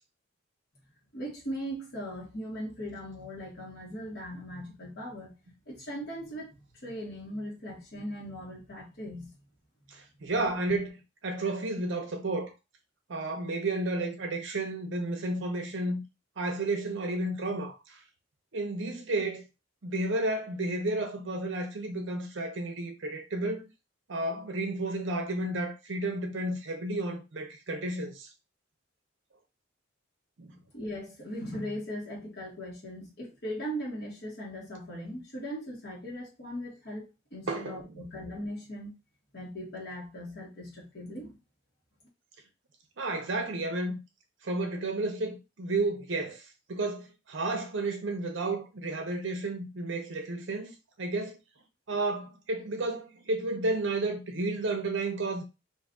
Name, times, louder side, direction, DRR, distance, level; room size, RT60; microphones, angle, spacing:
voice 1, 1.1-5.3 5.7-6.5 6.8-9.3 30.7-38.9 39.3-41.4, equal, 50° left, 1.3 m, -39 dB
voice 2, 9.9-12.5 13.1-16.0 16.4-18.0 18.5-19.4 19.8-23.7 24.1-28.3 30.4-30.6 37.5-38.0 43.0-44.0 44.4-46.4 46.7-51.4 51.9-55.4, right 2 dB, 65° right, 0.6 m, -32 dB
2.6 x 2.5 x 3.6 m
head